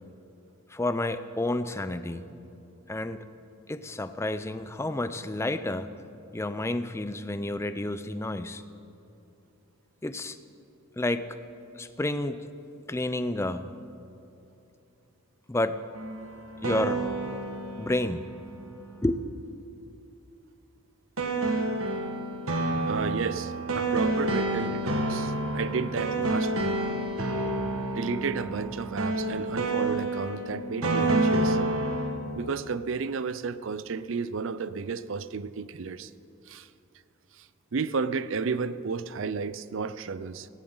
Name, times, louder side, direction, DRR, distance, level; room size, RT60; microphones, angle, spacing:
voice 1, 0.7-2.3 2.9-3.3 3.7-5.9 6.3-8.6 10.0-10.4 11.0-11.4 11.7-12.5 12.9-13.7 15.5-15.8 16.6-17.1 17.8-18.3 19.0-19.2, left 1 dB, 10° left, 12 dB, 0.4 m, -30 dB
sound 1, 15.9-18.9 21.2-32.2, right 2 dB, 75° right, 1.7 m, -29 dB
voice 2, 22.9-26.8 28.0-31.6 32.3-36.1 36.5-36.7 37.3-40.5, right 5 dB, 60° right, 15 dB, 0.5 m, -32 dB
18.0 x 16.5 x 4.0 m, 2.8 s
head